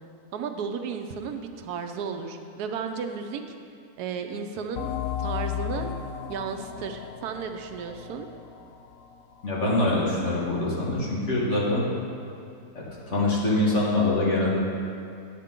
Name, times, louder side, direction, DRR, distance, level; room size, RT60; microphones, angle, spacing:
voice 1, 0.3-3.4 4.0-4.9 5.2-6.0 6.3-8.3, right 6 dB, 80° right, 6 dB, 1.2 m, -33 dB
sound 1, 4.7-10.0, left 9 dB, 70° left, 0.8 m, -35 dB
voice 2, 9.4-11.9 12.8-14.6, left 2 dB, 50° left, -5 dB, 1.7 m, -24 dB
10.0 x 6.6 x 3.7 m, 2.5 s
omnidirectional pair, 1.7 m